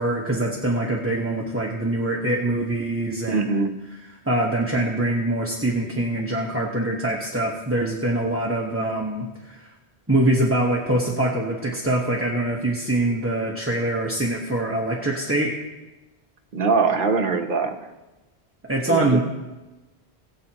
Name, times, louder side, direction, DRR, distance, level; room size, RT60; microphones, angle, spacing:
voice 1, 0.0-3.5 4.3-9.7 10.1-15.5 18.6-19.2, right 1 dB, 15° right, -2 dB, 1.1 m, -24 dB
voice 2, 3.3-3.7 16.5-17.7 18.9-19.2, right 4 dB, 55° right, 5 dB, 1.0 m, -22 dB
21.0 x 7.7 x 2.9 m, 1.1 s
omnidirectional pair, 1.1 m